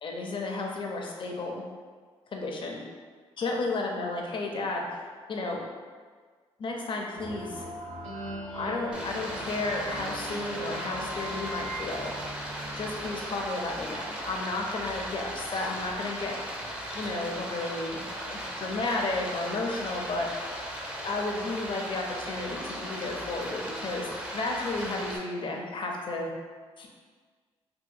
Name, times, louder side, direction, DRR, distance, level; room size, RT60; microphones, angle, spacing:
voice 1, 0.0-1.6 2.3-2.8 3.4-5.0 5.3-5.6 6.6-7.7 8.5-12.1 12.8-16.4 16.9-20.3 21.0-26.3 26.8-26.9, left 2 dB, 50° left, 0 dB, 0.5 m, -33 dB
sound 1, 7.1-13.7, right 1 dB, 90° right, 0.7 m, -40 dB
Stream, 8.9-25.2, equal, 10° right, 0.5 m, -37 dB
2.7 x 2.5 x 2.5 m, 1.5 s
cardioid pair, 65°, 11 cm